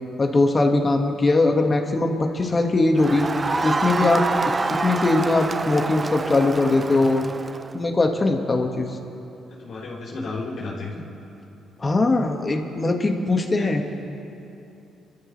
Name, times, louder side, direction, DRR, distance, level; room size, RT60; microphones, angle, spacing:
voice 1, 0.2-3.3 3.6-7.2 7.7-9.0 11.8-13.8, left 2 dB, 30° left, 3 dB, 1.8 m, -21 dB
Crowd, 3.0-7.8, right 3 dB, 30° right, 0.4 m, -27 dB
voice 2, 9.6-11.0 13.6-13.8, left 3 dB, 60° left, -5 dB, 3.9 m, -33 dB
28.5 x 13.0 x 3.3 m, 2.9 s
cardioid pair, 90°, 0 cm